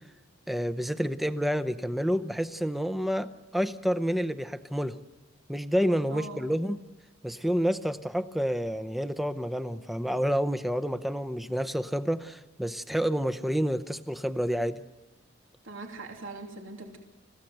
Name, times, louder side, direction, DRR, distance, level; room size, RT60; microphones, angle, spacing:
voice 1, 0.5-5.0 5.5-6.8 7.2-14.8, equal, ahead, 10 dB, 0.7 m, -29 dB
voice 2, 6.1-6.5 15.6-17.0, right 3 dB, 75° right, 3 dB, 2.9 m, -41 dB
29.5 x 16.0 x 7.9 m, 1.1 s
head